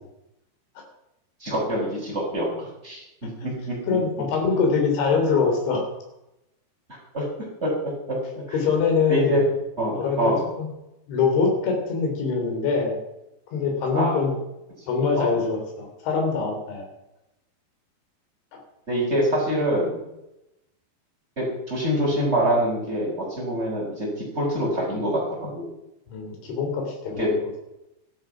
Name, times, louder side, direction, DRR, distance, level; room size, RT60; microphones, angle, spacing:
voice 1, 1.4-3.0 3.4-3.8 6.9-7.2 7.6-7.9 8.5-8.6 9.1-9.4 9.8-10.4 13.9-14.2 15.2-15.3 18.9-20.0 21.4-25.7 27.2-27.3, equal, 15° right, -4 dB, 6.4 m, -25 dB
voice 2, 3.9-5.8 8.5-9.4 9.9-10.7 11.1-13.0 13.5-14.3 14.9-16.9 26.1-27.4, left 5 dB, 85° left, 2 dB, 5.8 m, -23 dB
14.0 x 13.0 x 6.1 m, 0.88 s
omnidirectional pair, 5.2 m